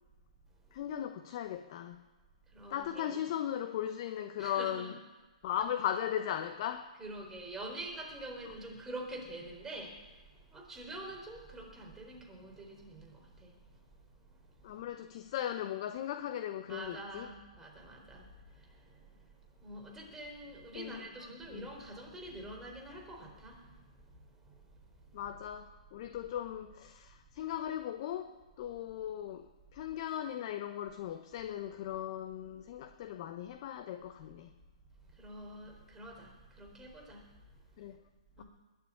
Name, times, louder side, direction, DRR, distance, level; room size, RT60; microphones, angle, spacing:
voice 1, 0.7-2.0 2.7-4.9 5.4-6.9 14.6-17.3 20.7-21.1 21.5-21.7 25.1-34.5 37.8-38.0 38.4-38.5, left 10 dB, 45° left, 8 dB, 0.9 m, -38 dB
voice 2, 2.5-3.2 4.4-4.9 7.0-14.8 16.7-25.2 35.1-37.8 38.4-38.5, right 1 dB, 10° right, 0 dB, 4.3 m, -47 dB
21.0 x 7.4 x 8.6 m, 1.2 s
hypercardioid pair, 125°, 4 cm